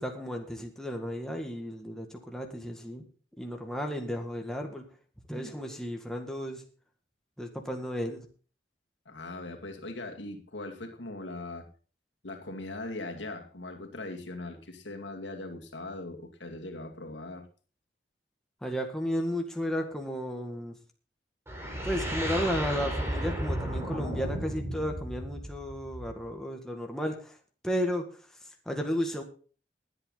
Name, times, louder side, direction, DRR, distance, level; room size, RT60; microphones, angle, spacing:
voice 1, 0.0-3.0 3.4-4.8 5.3-6.6 7.4-8.2 18.6-20.8 21.8-27.4 27.6-28.1 28.7-29.2, equal, 5° left, 2.0 m, -33 dB
voice 2, 9.1-11.7 12.2-17.5, left 2 dB, 75° left, 2.4 m, -40 dB
sound 1, 21.5-26.3, equal, 15° right, 3.9 m, -33 dB
21.5 x 8.4 x 4.0 m
head